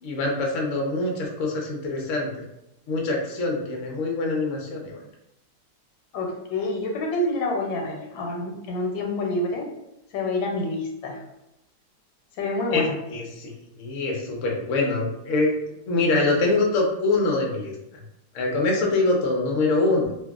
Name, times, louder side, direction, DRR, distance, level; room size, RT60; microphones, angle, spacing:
voice 1, 0.0-2.4 2.9-5.0 12.7-12.8 13.1-15.5 15.9-17.7 18.3-20.0, left 3 dB, 65° left, -1 dB, 0.8 m, -24 dB
voice 2, 6.1-9.7 10.1-11.2 12.4-13.0, left 2 dB, 90° left, 0 dB, 1.4 m, -27 dB
2.7 x 2.6 x 2.3 m, 0.85 s
omnidirectional pair, 2.0 m